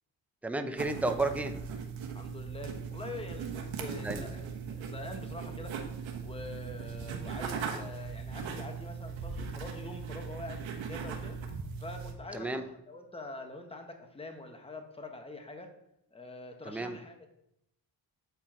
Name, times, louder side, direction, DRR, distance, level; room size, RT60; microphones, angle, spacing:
voice 1, 0.4-1.6 4.0-4.3 12.3-12.6 16.7-17.0, right 2 dB, 5° right, 7 dB, 0.6 m, -32 dB
sound 1, 0.8-12.1, right 6 dB, 80° right, 1.3 m, -39 dB
voice 2, 2.1-5.8 6.2-11.4 11.8-15.7 16.1-17.3, left 2 dB, 10° left, 4 dB, 1.3 m, -45 dB
8.4 x 4.5 x 4.4 m, 0.80 s
cardioid pair, 80°, 46 cm